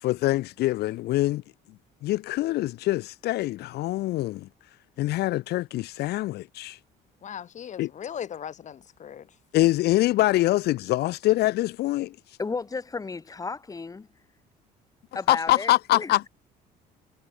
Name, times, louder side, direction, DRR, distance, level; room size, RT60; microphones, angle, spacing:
voice 1, 0.0-1.4 2.0-4.5 5.0-6.8 7.8-7.9 9.5-12.2 15.3-16.3, left 16 dB, 75° left, 0.8 m, -24 dB
voice 2, 7.2-9.3, left 9 dB, 45° left, 1.4 m, -38 dB
voice 3, 12.4-14.1 15.1-16.2, left 4 dB, 20° left, 1.6 m, -33 dB
cardioid pair, 110°, 17 cm